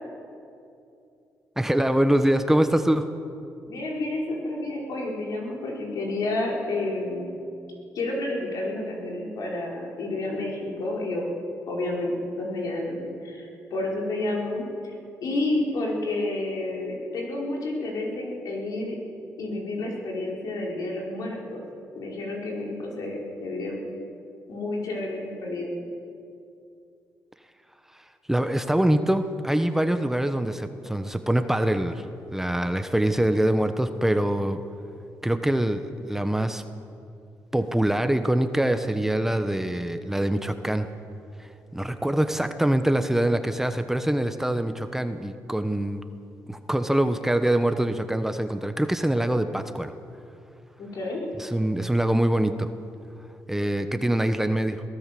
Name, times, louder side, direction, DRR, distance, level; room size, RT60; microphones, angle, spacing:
voice 1, 1.6-3.1 28.3-32.1 32.3-34.6 35.2-36.6 37.5-40.9 41.4-46.0 46.5-49.9 51.4-52.7 53.5-54.8, right 1 dB, 5° right, 8 dB, 1.1 m, -24 dB
voice 2, 3.7-7.4 7.9-11.2 11.7-14.9 15.2-19.0 19.4-21.6 21.9-23.8 24.5-25.7 50.8-51.2, left 2 dB, 70° left, -1 dB, 5.1 m, -30 dB
22.5 x 16.5 x 7.7 m, 2.6 s
cardioid pair, 85°, 6 cm